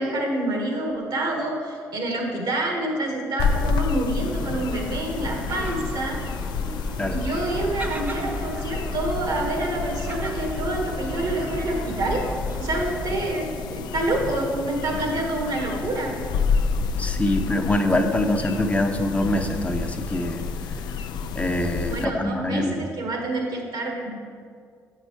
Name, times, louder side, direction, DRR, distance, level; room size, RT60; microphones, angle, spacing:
voice 1, 0.0-6.2 7.1-12.2 12.6-16.1 21.9-24.1, right 2 dB, 65° right, 1 dB, 1.7 m, -27 dB
sound 1, 3.4-22.0, left 5 dB, 70° left, 0.4 m, -29 dB
Gull seagull, 4.2-13.1, right 2 dB, 25° right, 1.0 m, -36 dB
voice 2, 17.0-20.4 21.4-22.7, left 1 dB, 20° left, 4 dB, 0.8 m, -24 dB
8.2 x 5.7 x 4.6 m, 2.1 s
hypercardioid pair, 50°, 8 cm